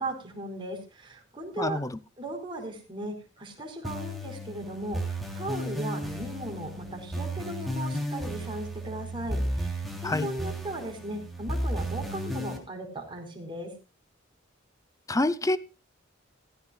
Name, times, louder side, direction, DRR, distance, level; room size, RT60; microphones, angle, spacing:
voice 1, 0.0-1.8 2.2-13.7, right 1 dB, 25° right, 4.6 m, -37 dB
voice 2, 1.6-1.9 10.0-10.3 15.1-15.6, left 2 dB, 15° left, 0.7 m, -26 dB
sound 1, 3.8-12.6, equal, ahead, 3.1 m, -34 dB
16.0 x 15.5 x 2.3 m
head